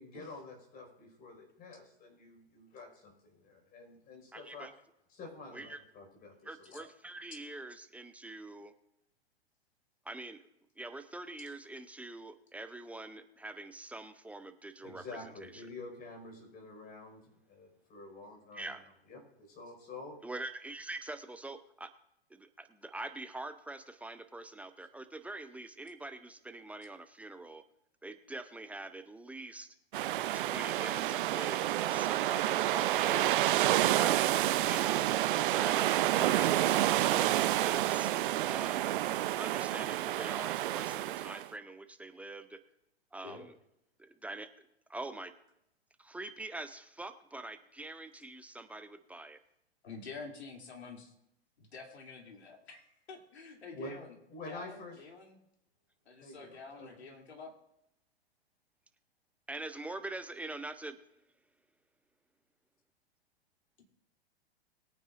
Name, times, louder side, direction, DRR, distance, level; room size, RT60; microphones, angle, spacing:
voice 1, 0.0-4.7 5.1-6.9 14.8-18.8 19.1-20.2 53.7-55.0 56.2-57.0, left 2 dB, 30° left, 2 dB, 5.0 m, -48 dB
voice 2, 4.3-4.7 5.5-5.8 6.4-8.7 10.1-10.4 10.8-15.0 15.4-15.7 18.5-18.8 20.2-21.9 22.3-27.6 28.0-29.7 30.3-33.2 33.7-35.1 35.4-36.8 37.1-38.1 38.4-39.0 39.3-42.6 43.1-43.5 44.0-44.5 44.9-45.3 46.0-49.4 59.5-60.9, right 2 dB, 5° right, 9 dB, 0.5 m, -44 dB
sound 1, 29.9-41.5, right 14 dB, 50° right, 0.6 m, -29 dB
voice 3, 33.1-33.4 43.2-43.5 49.8-51.1 51.6-54.1 54.5-55.4 56.0-57.5 63.8-63.9, left 4 dB, 80° left, 1 dB, 2.9 m, -48 dB
21.5 x 9.2 x 2.5 m, 0.81 s
hypercardioid pair, 115°, 32 cm